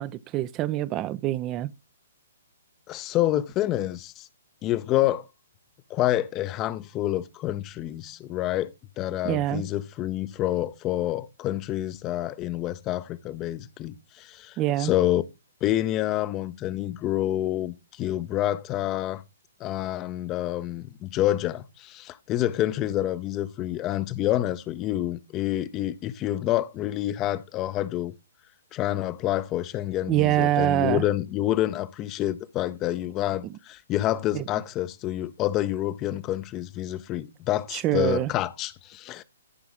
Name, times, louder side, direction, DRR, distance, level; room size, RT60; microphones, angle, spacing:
voice 1, 0.0-1.7 9.2-9.6 14.6-14.9 30.1-31.0 34.3-34.4 37.7-38.3, right 14 dB, 20° right, 0.5 m, -25 dB
voice 2, 2.9-4.3 4.6-5.2 5.9-15.2 15.6-19.2 19.6-28.1 28.7-39.2, left 14 dB, 20° left, 0.6 m, -28 dB
13.5 x 5.9 x 3.6 m
figure-of-eight pair, 125°, 0 cm